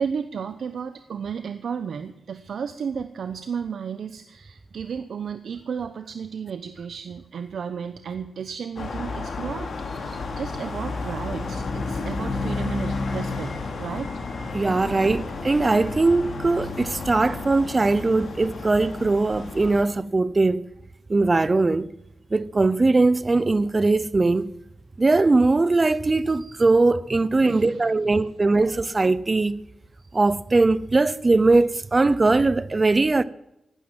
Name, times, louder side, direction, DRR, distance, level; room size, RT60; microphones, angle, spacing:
voice 1, 0.0-13.5 13.8-14.1 27.4-28.3, right 6 dB, 65° right, 0.9 m, -33 dB
sound 1, 8.8-19.8, left 3 dB, 50° left, 2.7 m, -31 dB
voice 2, 14.5-20.6 21.1-21.9 22.3-24.5 25.0-29.5 30.1-33.2, right 3 dB, 25° right, 0.7 m, -20 dB
15.5 x 12.0 x 7.6 m
wide cardioid pair, 160°, 0 cm